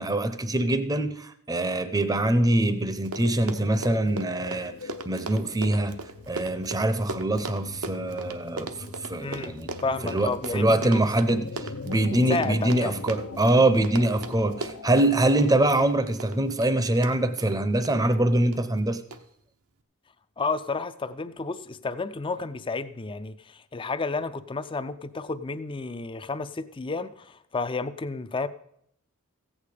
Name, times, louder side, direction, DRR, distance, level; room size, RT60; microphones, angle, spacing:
voice 1, 0.0-4.7 5.1-6.0 6.3-8.7 9.0-9.7 10.0-19.0, right 1 dB, 15° right, 0.7 m, -24 dB
sound 1, 2.2-16.3, left 3 dB, 85° left, 0.8 m, -41 dB
Run, 2.7-2.8 3.0-18.0 18.5-18.8 19.1-19.2, right 3 dB, 80° right, 0.9 m, -38 dB
voice 2, 9.2-9.5 9.8-10.9 12.1-13.0 20.4-28.5, left 3 dB, 25° left, 0.4 m, -31 dB
15.0 x 8.7 x 5.0 m
head